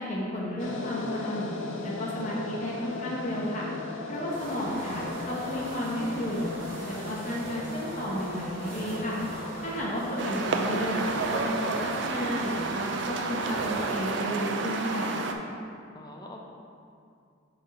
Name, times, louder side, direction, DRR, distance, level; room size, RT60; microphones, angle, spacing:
voice 1, 0.0-1.5 1.8-3.7 4.1-6.5 6.8-9.2 9.6-15.1, equal, 40° left, -5 dB, 0.9 m, -32 dB
sound 1, 0.6-12.9, left 3 dB, 75° left, 0.6 m, -39 dB
sound 2, 4.2-14.0, right 1 dB, 80° right, 1.6 m, -40 dB
sound 3, 10.2-15.3, right 3 dB, 65° right, 0.5 m, -31 dB
voice 2, 15.9-16.4, left 1 dB, 20° left, 0 dB, 0.6 m, -47 dB
5.9 x 3.6 x 5.5 m, 2.4 s
head